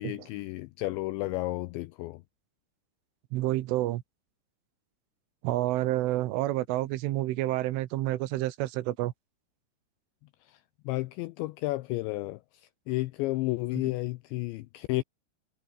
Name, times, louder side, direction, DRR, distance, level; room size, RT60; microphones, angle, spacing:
voice 1, 0.0-2.2 10.5-10.6 10.9-12.4 12.9-15.0, left 20 dB, 90° left, 2.6 m, -32 dB
voice 2, 3.3-4.0 5.4-9.1, right 16 dB, 80° right, 3.5 m, -29 dB
omnidirectional pair, 5.9 m